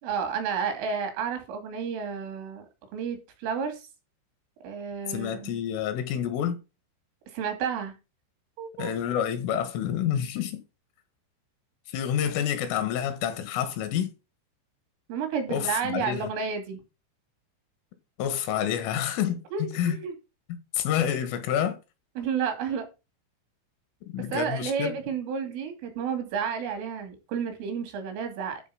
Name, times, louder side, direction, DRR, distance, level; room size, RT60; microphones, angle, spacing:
voice 1, 0.0-2.7 2.9-3.8 4.6-5.5 7.3-8.0 8.6-8.9 15.1-16.8 19.5-20.1 22.2-22.9 24.3-28.6, right 6 dB, 85° right, 5.0 m, -31 dB
voice 2, 5.1-6.6 8.8-10.6 11.9-14.1 15.5-16.3 18.2-20.0 20.5-21.8 24.1-24.9, left 9 dB, 85° left, 4.1 m, -28 dB
12.0 x 4.2 x 5.7 m
omnidirectional pair, 5.6 m